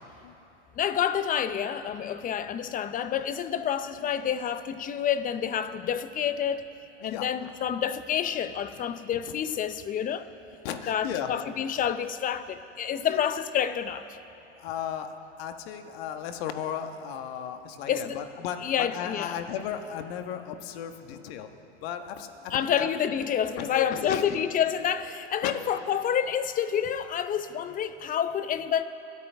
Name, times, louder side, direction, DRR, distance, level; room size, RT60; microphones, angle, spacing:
voice 1, 0.8-6.6 7.0-10.3 10.9-14.1 17.9-18.2 18.6-19.4 22.5-28.8, left 9 dB, 20° left, 12 dB, 0.7 m, -28 dB
voice 2, 10.6-11.3 13.0-13.2 14.5-15.1 15.4-21.5 21.8-22.9 23.6-24.4 25.4-25.5, left 9 dB, 55° left, 7 dB, 1.5 m, -35 dB
29.0 x 13.5 x 3.6 m, 2.9 s
hypercardioid pair, 110°, 37 cm